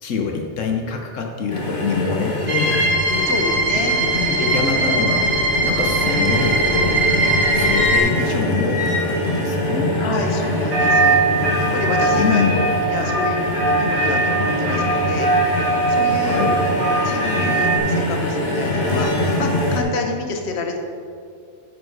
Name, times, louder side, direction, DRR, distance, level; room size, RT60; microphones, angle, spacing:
voice 1, 0.0-2.8 3.1-3.3 3.9-5.3 5.6-7.0 7.5-10.0 12.1-12.6 16.2-16.6, left 5 dB, 85° left, 2 dB, 1.2 m, -25 dB
sound 1, 1.5-19.8, left 1 dB, 45° left, 1.7 m, -23 dB
sound 2, 2.5-8.0, right 2 dB, 45° right, 1.5 m, -21 dB
voice 2, 3.3-4.0 10.0-11.2 11.6-15.3 15.9-20.8, left 3 dB, 60° left, 3 dB, 1.4 m, -28 dB
sound 3, 10.7-17.8, right 3 dB, 70° right, 3.2 m, -20 dB
10.0 x 9.5 x 4.0 m, 2.4 s
omnidirectional pair, 1.3 m